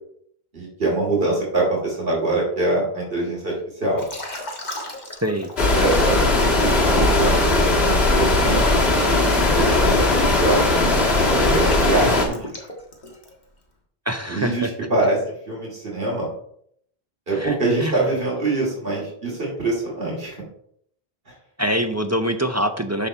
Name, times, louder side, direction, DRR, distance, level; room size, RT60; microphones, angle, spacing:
voice 1, 0.5-3.5 3.8-4.0 5.7-6.2 6.6-8.7 9.3-10.7 11.4-12.5 14.3-16.3 17.3-20.4, right 2 dB, 65° right, -3 dB, 2.8 m, -24 dB
Liquid, 4.0-6.0 6.5-13.4, left 1 dB, 45° left, 1.7 m, -36 dB
sound 1, 5.6-12.3, left 2 dB, 80° left, 1.9 m, -18 dB
voice 2, 14.1-14.7 17.3-18.1 21.6-23.1, equal, 25° right, 6 dB, 0.4 m, -24 dB
12.5 x 4.2 x 4.4 m, 0.69 s
omnidirectional pair, 1.0 m